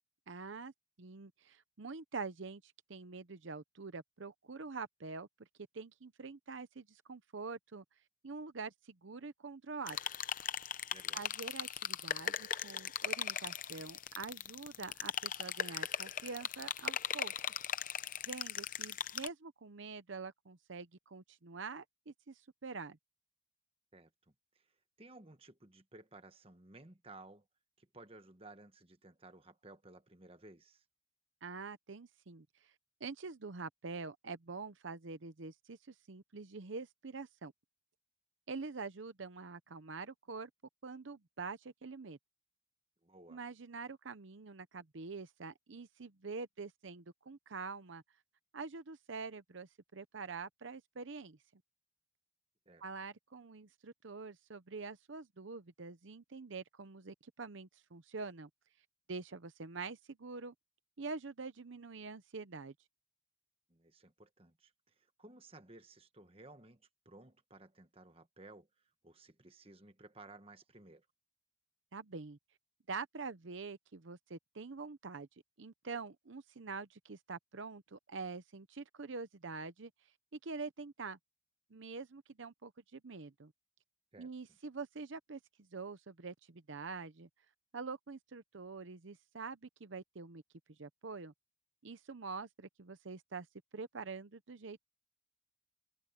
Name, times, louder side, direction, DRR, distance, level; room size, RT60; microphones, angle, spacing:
voice 1, 0.3-0.7 1.0-5.3 5.7-7.8 8.2-10.0 11.1-17.3 18.3-23.0 31.4-32.7 33.0-37.5 38.5-40.5 40.8-42.2 43.3-48.0 48.5-51.4 52.8-58.5 59.1-60.5 61.0-62.7 71.9-72.4 72.9-75.3 75.6-79.9 80.4-81.2 81.7-83.5 84.2-85.4 85.7-87.3 87.7-90.4 90.8-91.3 91.8-93.5 93.7-94.8, right 4 dB, 70° right, 0.8 m, -45 dB
sound 1, 9.9-19.3, left 9 dB, 40° left, 0.7 m, -39 dB
voice 2, 10.9-11.3 23.9-24.1 24.5-24.6 25.0-27.4 27.8-30.8 43.0-43.4 52.7-52.8 63.7-68.7 69.0-71.0 84.1-84.6, right 2 dB, 30° right, 1.4 m, -57 dB
head